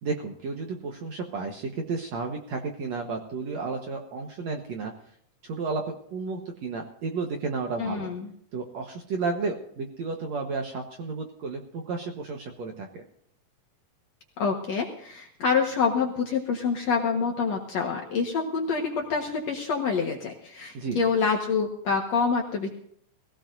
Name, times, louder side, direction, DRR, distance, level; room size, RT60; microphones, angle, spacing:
voice 1, 0.0-4.9 5.4-8.1 8.5-13.0 20.7-21.0, right 4 dB, 60° right, 2 dB, 2.1 m, -32 dB
voice 2, 7.8-8.3 14.4-22.7, left 5 dB, 55° left, 0 dB, 2.2 m, -26 dB
21.5 x 16.0 x 2.7 m, 0.66 s
omnidirectional pair, 4.2 m